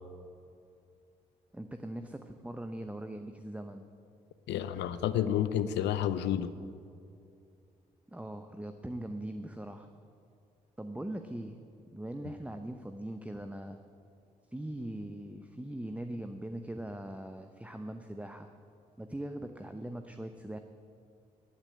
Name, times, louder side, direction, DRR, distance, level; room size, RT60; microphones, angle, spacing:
voice 1, 1.5-3.8 8.1-9.9 10.8-11.6 11.9-13.8 14.5-18.5 19.0-20.6, right 1 dB, 5° right, 7 dB, 0.8 m, -41 dB
voice 2, 4.5-6.5, left 10 dB, 80° left, 14 dB, 0.6 m, -30 dB
9.8 x 8.9 x 8.6 m, 2.4 s
hypercardioid pair, 45°, 18 cm